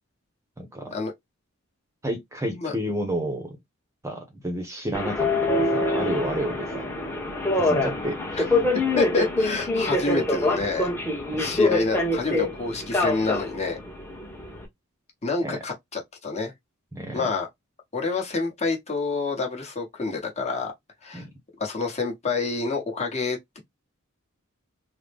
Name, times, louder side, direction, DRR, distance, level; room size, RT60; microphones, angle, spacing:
voice 1, 0.6-0.9 2.0-3.6 4.0-6.9 7.6-8.6 11.3-11.6 15.4-15.6 16.9-17.3 21.1-21.3, right 1 dB, 15° right, 0.8 m, -31 dB
Subway metro underground, 4.9-14.7, left 2 dB, 10° left, 1.0 m, -25 dB
voice 2, 8.9-10.9 11.4-13.8 15.2-16.5 17.1-17.5 17.9-20.7 21.0-21.2 21.6-23.6, left 4 dB, 30° left, 1.2 m, -28 dB
3.8 x 2.1 x 3.3 m
head